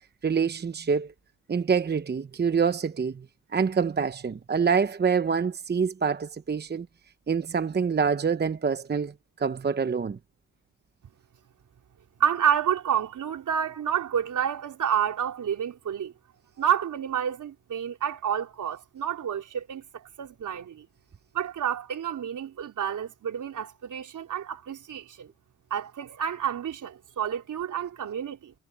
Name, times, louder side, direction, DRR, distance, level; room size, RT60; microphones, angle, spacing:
voice 1, 0.2-1.1 1.5-3.2 3.5-6.9 7.3-10.2, right 6 dB, 30° right, 0.9 m, -26 dB
voice 2, 12.2-16.1 16.6-20.9 21.3-25.3 25.7-28.5, right 9 dB, 70° right, 4.0 m, -29 dB
cardioid pair, 75°, 32 cm